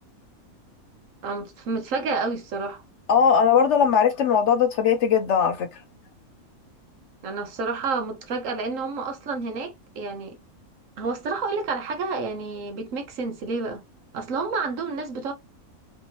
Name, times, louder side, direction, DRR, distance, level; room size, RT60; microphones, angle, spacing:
voice 1, 1.2-2.8 7.2-10.4 11.0-13.8 14.1-15.3, right 4 dB, 65° right, 1.2 m, -29 dB
voice 2, 3.1-5.7, left 7 dB, 65° left, 0.7 m, -19 dB
3.3 x 3.0 x 2.7 m
omnidirectional pair, 1.5 m